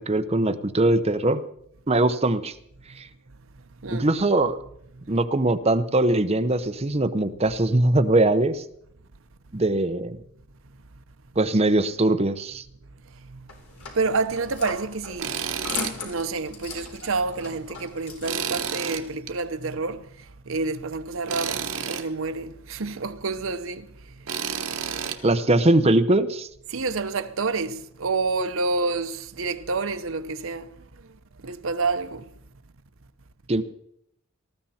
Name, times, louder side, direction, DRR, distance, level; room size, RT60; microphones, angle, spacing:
voice 1, 0.0-1.4 1.9-2.5 3.0-3.1 3.9-4.6 5.1-8.6 9.5-10.2 11.4-12.6 25.2-26.5 33.5-33.6, right 2 dB, 30° right, 0.8 m, -21 dB
sound 1, 13.5-18.7, left 4 dB, 90° left, 3.9 m, -38 dB
voice 2, 13.9-15.4 16.0-23.9 26.7-30.8 31.4-32.3, right 3 dB, 65° right, 0.9 m, -28 dB
Tools, 15.2-16.0 16.4-16.5 18.3-19.3 21.3-22.1 24.3-25.2, right 7 dB, 80° right, 1.3 m, -30 dB
19.0 x 14.5 x 4.3 m
head